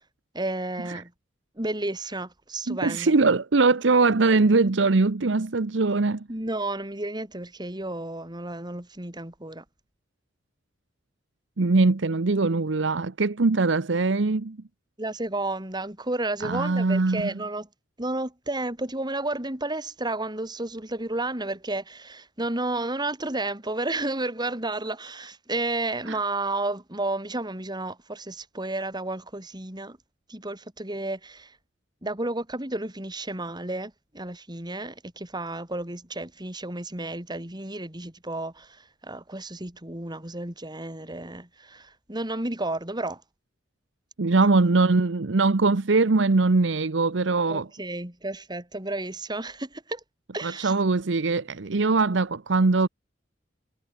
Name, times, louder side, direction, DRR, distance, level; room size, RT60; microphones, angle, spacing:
voice 1, 0.3-1.1 1.6-3.2 6.3-9.6 15.0-17.7 18.0-30.0 30.3-31.5 32.0-43.2 44.3-44.6 47.5-50.0 50.3-50.8, right 2 dB, 25° right, 4.1 m, -32 dB
voice 2, 2.7-6.3 11.6-14.6 16.4-17.3 26.1-26.2 44.2-47.7 50.4-52.9, right 3 dB, 70° right, 0.8 m, -22 dB
head